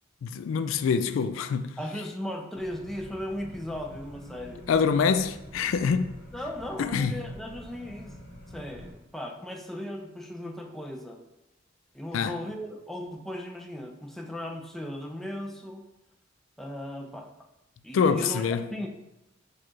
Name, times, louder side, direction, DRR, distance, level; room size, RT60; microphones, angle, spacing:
voice 1, 0.2-1.8 4.7-6.2 6.8-7.2 12.1-12.4 17.9-18.6, left 6 dB, 80° left, 0.3 m, -25 dB
voice 2, 1.8-4.6 6.3-8.2 8.5-11.2 11.9-15.9 16.6-17.3 17.8-18.9, left 1 dB, ahead, 0.4 m, -37 dB
sound 1, 2.6-8.9, equal, 55° left, 1.0 m, -46 dB
4.6 x 2.4 x 4.5 m
head